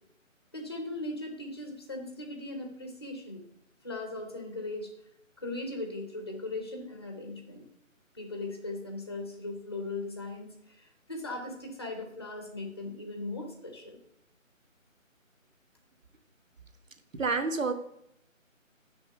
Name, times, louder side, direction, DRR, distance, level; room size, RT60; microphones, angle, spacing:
voice 1, 0.5-3.5 3.8-4.9 5.4-7.7 8.1-14.0, left 2 dB, 20° left, 3 dB, 0.7 m, -38 dB
voice 2, 17.1-17.7, right 4 dB, 70° right, 9 dB, 1.2 m, -28 dB
6.4 x 5.0 x 6.6 m, 0.77 s
figure-of-eight pair, 160°, 40 cm